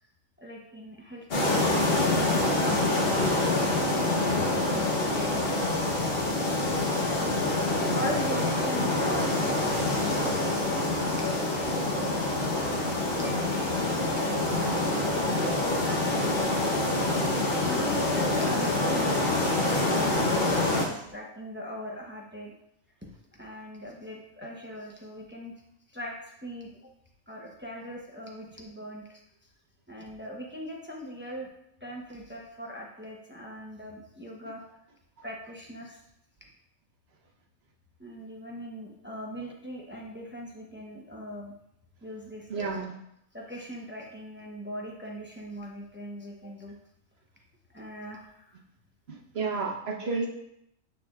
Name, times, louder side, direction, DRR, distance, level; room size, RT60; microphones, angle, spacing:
voice 1, 0.4-5.9 7.0-10.8 11.1-12.3 13.1-14.7 14.9-15.0 15.4-15.5 15.8-16.5 17.6-22.5 23.0-23.1 23.4-25.5 25.9-26.8 27.3-29.2 29.9-31.5 31.8-34.6 35.2-36.0 38.0-41.5 42.0-42.9 43.3-46.7 47.7-48.6 50.0-50.1, equal, 10° right, -2 dB, 0.7 m, -41 dB
sound 1, 1.3-20.9, left 2 dB, 50° left, 1.2 m, -26 dB
voice 2, 42.5-42.9 49.1-50.3, right 4 dB, 55° right, 0 dB, 1.1 m, -32 dB
6.7 x 6.5 x 2.4 m, 0.78 s
omnidirectional pair, 1.4 m